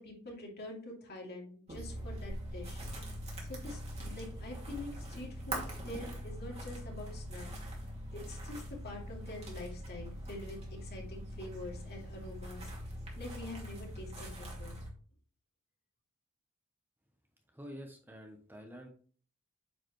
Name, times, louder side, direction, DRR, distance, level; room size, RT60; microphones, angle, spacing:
voice 1, 0.0-2.8 3.5-7.5 8.1-12.7 13.2-14.8, left 2 dB, 50° left, -1 dB, 2.6 m, -46 dB
sound 1, 1.7-14.9, equal, 30° right, 2.4 m, -43 dB
voice 2, 17.5-18.9, equal, 10° right, 2 dB, 0.9 m, -48 dB
9.1 x 4.7 x 3.1 m, 0.44 s
head